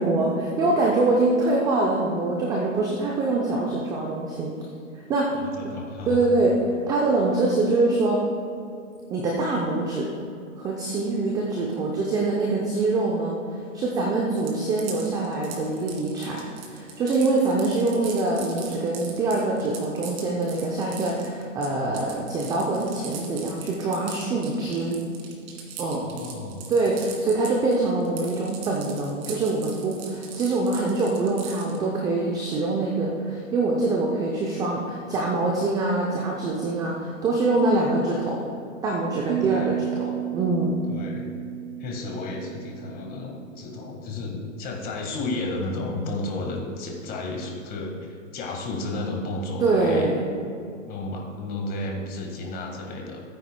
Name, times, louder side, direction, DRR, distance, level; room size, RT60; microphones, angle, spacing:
voice 1, 0.0-4.5 5.1-5.3 5.6-5.7 6.1-6.5 6.9-8.2 9.1-10.1 10.6-13.4 13.7-25.0 25.8-26.1 26.7-38.4 38.8-40.8 49.6-50.3, right 2 dB, 10° right, -1 dB, 0.5 m, -24 dB
voice 2, 5.3-6.2 26.0-26.6 39.4-39.8 40.9-41.4 41.8-50.1 50.9-53.2, left 2 dB, 20° left, 1 dB, 1.6 m, -32 dB
sound 1, 14.4-27.8 28.0-31.8, right 7 dB, 35° right, 2.0 m, -40 dB
sound 2, 39.3-44.2, right 12 dB, 75° right, 0.6 m, -33 dB
16.0 x 9.5 x 2.2 m, 2.4 s
hypercardioid pair, 130°, 40 cm